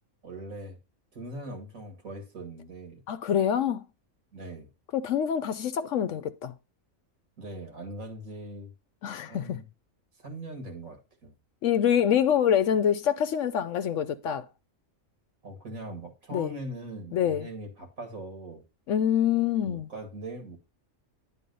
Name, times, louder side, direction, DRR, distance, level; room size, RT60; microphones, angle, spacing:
voice 1, 0.2-0.8 1.1-3.0 4.3-4.7 7.4-8.7 9.3-9.7 10.2-11.3 15.4-18.6 19.6-20.6, right 1 dB, 70° right, 2.3 m, -41 dB
voice 2, 3.1-3.9 4.9-6.5 9.0-9.6 11.6-14.5 16.3-16.5 17.1-17.5 18.9-19.9, left 9 dB, 70° left, 0.9 m, -25 dB
10.0 x 4.1 x 5.3 m
omnidirectional pair, 1.5 m